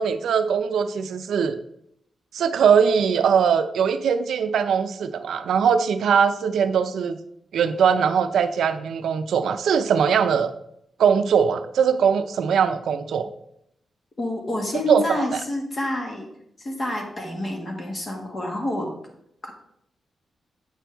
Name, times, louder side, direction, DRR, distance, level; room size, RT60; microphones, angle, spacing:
voice 1, 0.0-1.6 2.3-7.2 7.5-10.5 11.0-13.3 14.9-15.2, right 7 dB, 85° right, 10 dB, 0.5 m, -21 dB
voice 2, 14.2-16.3 16.6-18.9 19.4-19.5, left 1 dB, 30° left, 1 dB, 1.6 m, -28 dB
8.2 x 6.0 x 3.4 m, 0.75 s
wide cardioid pair, 145°, 0 cm